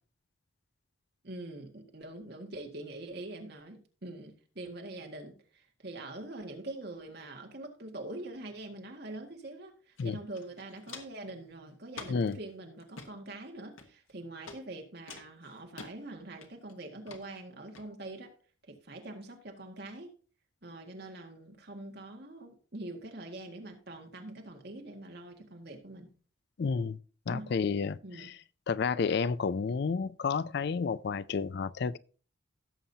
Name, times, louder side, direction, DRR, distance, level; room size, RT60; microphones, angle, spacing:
voice 1, 1.2-18.3 18.7-20.1 20.6-26.1 27.3-27.5 28.0-28.3, right 2 dB, 55° right, 1.8 m, -44 dB
Walk footsteps, 10.0-10.1 10.3-11.3 11.9-12.3 12.8-13.1 13.8-14.1 14.5-14.6 15.1-15.9 16.4-16.7 17.1-17.2 17.8-17.9, left 4 dB, 85° left, 1.4 m, -46 dB
voice 2, 26.6-27.0 27.3-28.3 28.7-32.0, left 5 dB, 55° left, 0.4 m, -31 dB
16.5 x 7.1 x 2.8 m
head